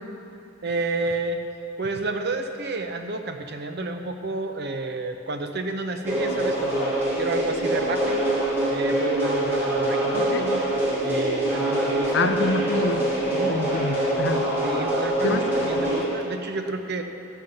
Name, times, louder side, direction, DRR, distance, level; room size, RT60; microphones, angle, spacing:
voice 1, 0.6-1.4 1.8-8.4 8.7-10.6 11.0-12.6 13.3-13.6 14.6-17.0, right 2 dB, 50° right, 5 dB, 0.7 m, -30 dB
sound 1, 6.0-16.0, right 1 dB, 10° right, 3.0 m, -24 dB
voice 2, 10.1-10.5 12.1-13.0 13.5-14.5 15.2-15.4, left 2 dB, 55° left, 6 dB, 0.6 m, -26 dB
13.0 x 5.6 x 7.8 m, 2.8 s
head